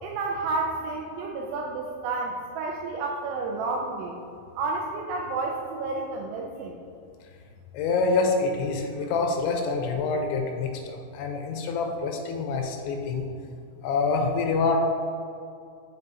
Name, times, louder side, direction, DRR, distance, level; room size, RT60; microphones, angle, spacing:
voice 1, 0.0-4.1 4.6-6.8, right 3 dB, 85° right, 1 dB, 2.4 m, -30 dB
voice 2, 7.7-13.3 13.8-14.8, left 4 dB, 85° left, 3 dB, 3.1 m, -26 dB
7.6 x 5.3 x 4.0 m, 2.4 s
omnidirectional pair, 5.3 m